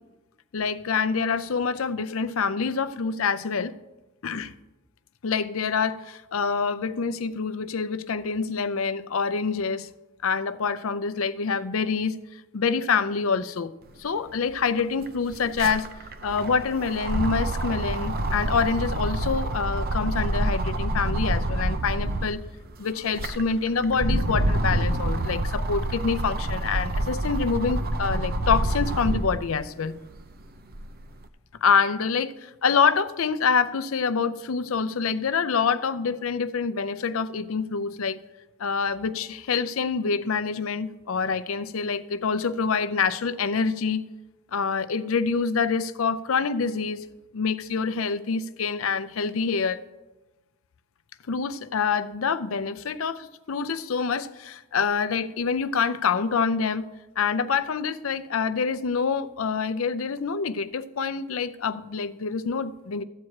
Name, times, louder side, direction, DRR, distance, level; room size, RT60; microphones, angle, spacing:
voice 1, 0.5-3.7 4.2-4.5 5.2-9.9 10.2-12.2 12.5-13.7 14.0-15.9 16.2-22.4 22.8-29.9 31.6-38.2 38.6-44.1 44.5-47.0 47.3-49.8 51.3-56.9 57.2-63.0, left 5 dB, 70° left, 0.5 m, -26 dB
sound 1, 14.3-14.4 14.6-22.4 22.9-29.4 29.9-31.1, right 1 dB, 45° right, 0.6 m, -27 dB
13.5 x 4.8 x 8.5 m
head